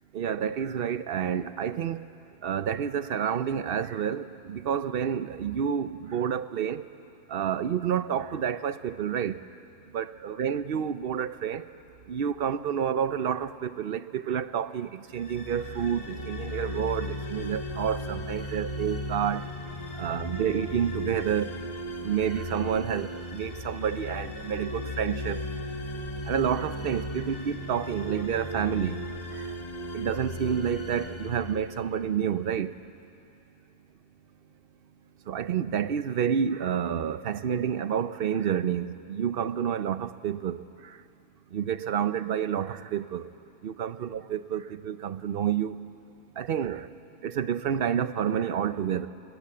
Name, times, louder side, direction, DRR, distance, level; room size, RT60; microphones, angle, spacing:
voice 1, 0.1-2.0 2.4-6.8 7.3-9.4 9.9-11.7 12.1-19.5 19.9-21.5 22.0-25.4 26.3-29.0 29.3-29.5 29.9-32.7 35.3-41.0 41.5-43.3 43.6-45.8 46.4-46.9 47.2-49.1, right 8 dB, 65° right, 13 dB, 0.9 m, -29 dB
sound 1, 15.1-32.3, left 1 dB, 40° left, 1.6 m, -36 dB
21.5 x 20.0 x 8.5 m, 2.6 s
omnidirectional pair, 1.1 m